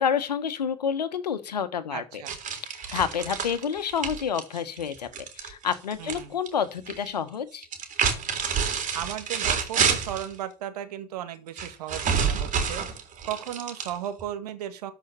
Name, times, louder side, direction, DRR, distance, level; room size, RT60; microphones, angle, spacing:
voice 1, 0.0-2.2 2.7-5.1 5.3-7.7, left 7 dB, 90° left, 1.4 m, -29 dB
voice 2, 1.9-2.4 6.0-6.3 8.9-12.8 13.2-14.9, right 10 dB, 75° right, 2.0 m, -35 dB
sound 1, 2.3-6.2 6.5-7.1 7.6-10.3 11.6-14.2, right 6 dB, 40° right, 3.8 m, -28 dB
13.0 x 5.7 x 7.0 m
hypercardioid pair, 80°, 20 cm